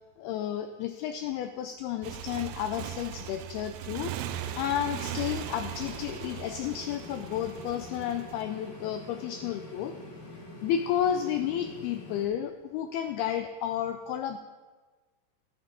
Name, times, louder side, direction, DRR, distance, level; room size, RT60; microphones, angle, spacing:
voice 1, 0.2-4.1 4.6-9.9 10.3-14.4, left 10 dB, 85° left, 8 dB, 2.2 m, -32 dB
Motorcycle, 2.0-8.4, right 12 dB, 90° right, 2.2 m, -39 dB
sound 1, 4.2-12.3, left 2 dB, 50° left, 1.3 m, -45 dB
12.0 x 11.0 x 3.7 m, 1.3 s
omnidirectional pair, 5.0 m